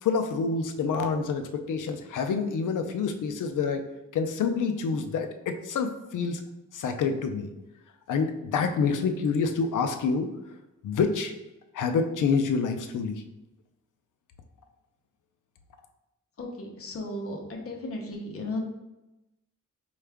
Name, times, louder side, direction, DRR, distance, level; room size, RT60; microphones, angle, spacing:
voice 1, 0.0-3.9 4.1-6.4 6.7-7.5 8.1-10.3 10.8-11.3 11.7-13.2, left 5 dB, 80° left, 7 dB, 0.5 m, -27 dB
voice 2, 16.4-18.6, left 1 dB, 45° left, 0 dB, 0.7 m, -35 dB
4.4 x 2.4 x 3.4 m, 0.96 s
wide cardioid pair, 150°, 30 cm